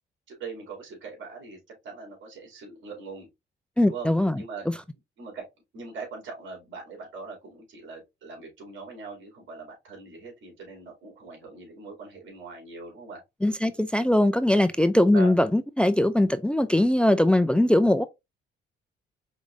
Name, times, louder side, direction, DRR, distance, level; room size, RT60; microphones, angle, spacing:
voice 1, 0.3-3.3 3.8-4.1 4.4-4.7 5.2-5.4 5.7-13.2 15.1-15.3, right 4 dB, 75° right, 3.0 m, -41 dB
voice 2, 3.8-4.4 13.4-18.0, left 1 dB, 5° left, 0.4 m, -21 dB
4.8 x 3.6 x 2.5 m
cardioid pair, 90°, 20 cm